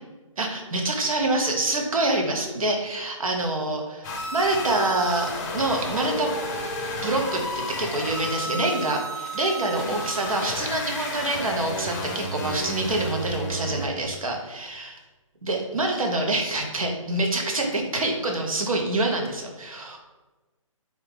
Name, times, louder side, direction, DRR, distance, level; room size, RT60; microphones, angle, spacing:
voice 1, 0.4-6.4 7.0-15.0 15.4-20.0, right 2 dB, 90° right, 2 dB, 0.8 m, -26 dB
sound 1, 4.0-13.9, left 1 dB, 30° left, 0.5 m, -32 dB
3.8 x 2.1 x 3.3 m, 1.2 s
hypercardioid pair, 150°, 17 cm